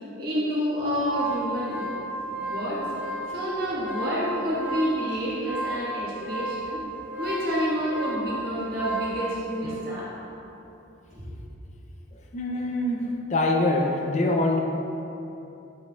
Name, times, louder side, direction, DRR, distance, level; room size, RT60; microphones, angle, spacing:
voice 1, 0.2-2.9 3.3-6.8 7.2-10.1 11.1-11.2, equal, 50° right, -8 dB, 1.4 m, -29 dB
sound 1, 0.8-9.2, right 1 dB, 10° right, 1.2 m, -33 dB
voice 2, 12.3-14.6, left 2 dB, 35° left, 1 dB, 0.4 m, -25 dB
7.8 x 5.5 x 2.3 m, 2.9 s
head